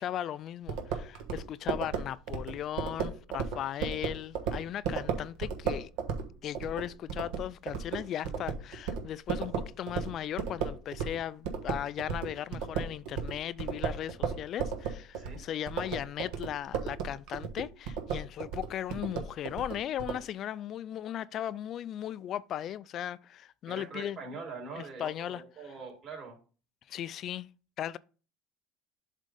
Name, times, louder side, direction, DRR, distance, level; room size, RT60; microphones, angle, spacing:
voice 1, 0.0-5.9 6.4-24.2 24.8-25.4 26.9-27.5 27.8-28.0, left 11 dB, 45° left, 0.3 m, -37 dB
sound 1, 0.7-11.2 11.4-20.2, right 6 dB, 75° right, 1.3 m, -34 dB
voice 2, 23.6-26.4, right 4 dB, 40° right, 3.7 m, -43 dB
7.6 x 3.6 x 5.1 m
supercardioid pair, 115°, 0 cm